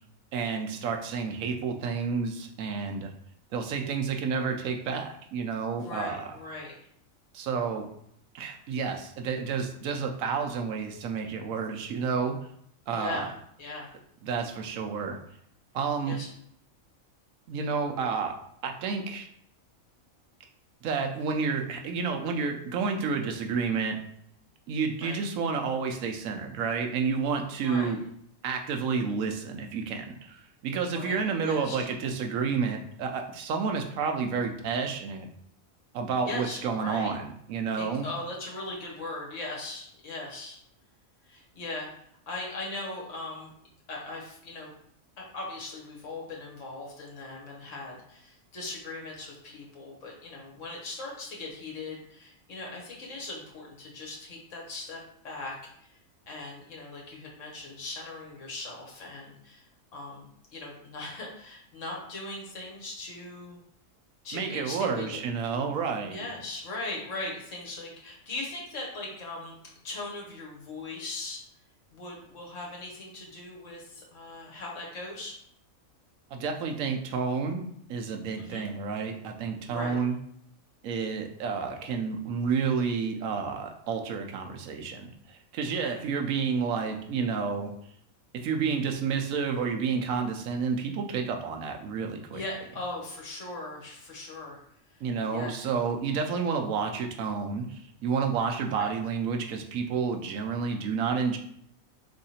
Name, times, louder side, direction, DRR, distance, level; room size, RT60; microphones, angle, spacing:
voice 1, 0.3-3.1 3.5-6.2 7.3-7.8 8.3-12.3 12.9-13.2 14.2-15.2 15.7-16.2 17.5-18.3 18.6-19.3 20.8-24.0 24.7-28.0 28.4-35.3 35.9-38.1 64.3-66.2 76.3-80.2 80.8-87.7 88.3-92.4 95.0-101.4, right 5 dB, 75° right, 4 dB, 1.0 m, -30 dB
voice 2, 5.8-6.7 12.9-13.3 13.6-13.9 16.1-16.3 21.2-21.3 25.0-25.2 27.6-28.0 30.9-31.8 36.3-37.1 37.8-40.6 41.2-41.9 42.3-43.5 43.9-44.7 45.2-55.9 56.3-59.6 59.9-60.2 60.5-63.6 64.2-65.2 66.1-69.5 69.8-71.4 71.9-75.4 78.4-78.7 79.7-80.0 85.6-86.0 92.3-94.6 94.9-95.0 95.3-95.7 96.2-96.4 98.6-98.9, left 2 dB, 65° left, -1 dB, 1.5 m, -39 dB
3.7 x 3.2 x 4.2 m, 0.69 s
omnidirectional pair, 1.4 m